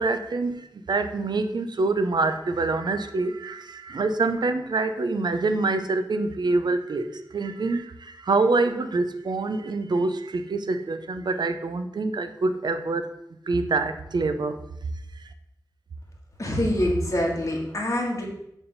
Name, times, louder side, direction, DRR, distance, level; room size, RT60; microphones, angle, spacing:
voice 1, 0.0-13.0 13.5-14.6, right 3 dB, 80° right, 0.6 m, -26 dB
voice 2, 16.4-18.2, left 1 dB, 45° left, 1.6 m, -25 dB
7.0 x 3.4 x 5.4 m
wide cardioid pair, 95°, 7 cm